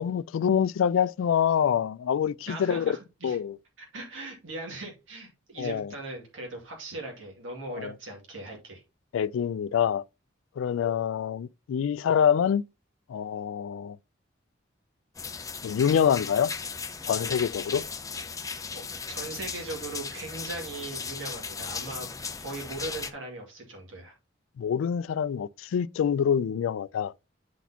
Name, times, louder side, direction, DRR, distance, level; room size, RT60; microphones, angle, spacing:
voice 1, 0.0-3.0 3.2-3.6 5.6-5.9 7.7-7.9 9.1-10.0 10.6-12.6 13.1-14.0 15.6-16.5 17.0-17.9 24.6-27.1, left 8 dB, 85° left, 0.3 m, -26 dB
voice 2, 2.5-3.4 3.8-8.8 18.7-18.8 19.1-22.1 22.4-24.1, right 2 dB, 80° right, 2.3 m, -39 dB
sound 1, 15.2-23.1, left 5 dB, 15° left, 0.5 m, -36 dB
10.0 x 4.1 x 2.8 m
head